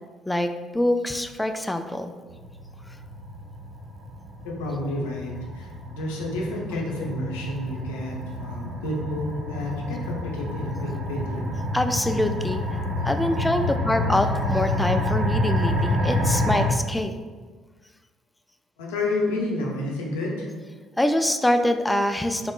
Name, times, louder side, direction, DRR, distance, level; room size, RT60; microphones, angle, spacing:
voice 1, 0.3-2.1 11.7-17.1 21.0-22.5, left 1 dB, 10° left, 8 dB, 0.3 m, -25 dB
sound 1, 2.3-16.7, left 1 dB, 65° right, 0.7 m, -28 dB
voice 2, 4.4-11.6 18.8-20.5, left 1 dB, 80° left, -2 dB, 0.7 m, -30 dB
3.7 x 3.5 x 2.4 m, 1.4 s
hypercardioid pair, 55°, 0 cm